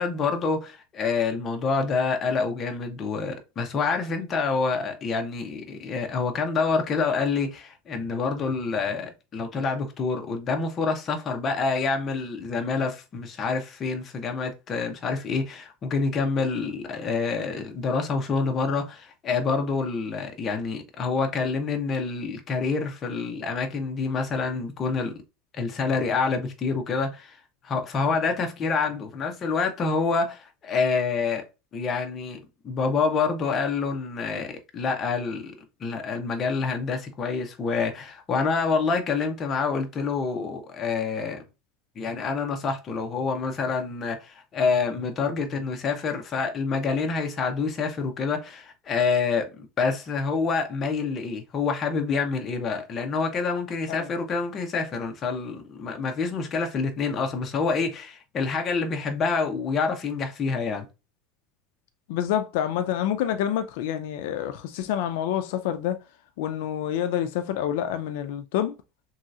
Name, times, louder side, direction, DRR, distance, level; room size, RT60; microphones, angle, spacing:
voice 1, 0.0-25.1 25.6-27.4 27.6-31.4 31.7-32.4 32.6-35.5 35.8-41.4 42.0-60.8, left 4 dB, 25° left, 0.6 m, -27 dB
voice 2, 62.1-66.0 66.4-68.7, left 10 dB, 70° left, 0.3 m, -27 dB
3.0 x 2.7 x 2.3 m
cardioid pair, 170°, 0 cm